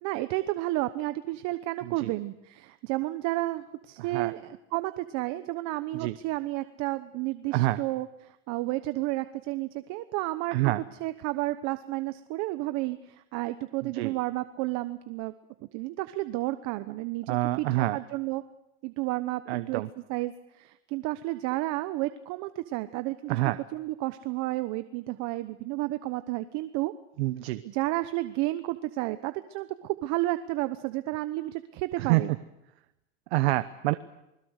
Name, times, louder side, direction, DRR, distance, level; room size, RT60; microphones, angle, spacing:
voice 1, 0.0-10.7 11.0-15.3 15.7-18.4 18.8-19.8 20.1-23.4 23.7-26.9 27.6-32.4, right 18 dB, 60° right, 11 dB, 1.1 m, -31 dB
voice 2, 1.8-2.1 4.0-4.3 5.9-6.2 7.5-7.8 10.5-10.8 13.8-14.1 17.3-18.0 19.5-19.9 23.3-23.6 27.2-27.6 32.0-32.2 33.3-33.9, right 18 dB, 90° right, 12 dB, 1.0 m, -27 dB
29.0 x 21.0 x 6.5 m, 0.89 s
supercardioid pair, 120°, 30 cm